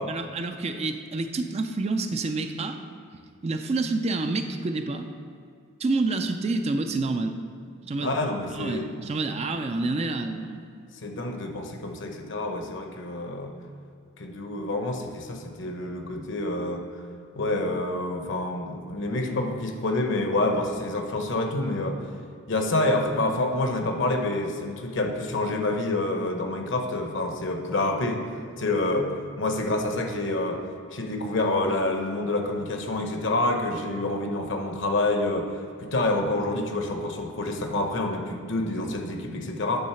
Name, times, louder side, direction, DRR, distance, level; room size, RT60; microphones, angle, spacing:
voice 1, 0.1-2.8 3.4-5.1 5.8-7.4 7.8-8.1 8.5-10.6, right 3 dB, 30° right, 7 dB, 0.4 m, -28 dB
voice 2, 8.0-8.9 11.0-13.5 14.2-17.0 17.4-22.0 22.5-28.3 28.6-30.6 30.9-39.8, left 2 dB, 60° left, 3 dB, 0.9 m, -27 dB
9.2 x 3.8 x 5.7 m, 2.3 s
head